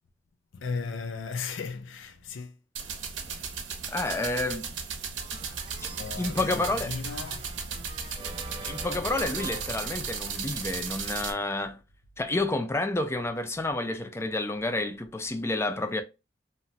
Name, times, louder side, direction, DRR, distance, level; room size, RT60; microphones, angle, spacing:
voice 1, 0.5-2.6 6.0-8.8 10.1-10.2, left 5 dB, 85° left, 0.5 m, -37 dB
sound 1, 2.8-11.3, right 5 dB, 75° right, 0.7 m, -35 dB
voice 2, 3.9-4.7 5.8-6.9 8.2-8.3 8.6-11.8 12.2-16.0, left 2 dB, 15° left, 0.4 m, -30 dB
sound 2, 5.2-10.5, right 3 dB, 30° right, 0.7 m, -46 dB
2.8 x 2.1 x 2.6 m
head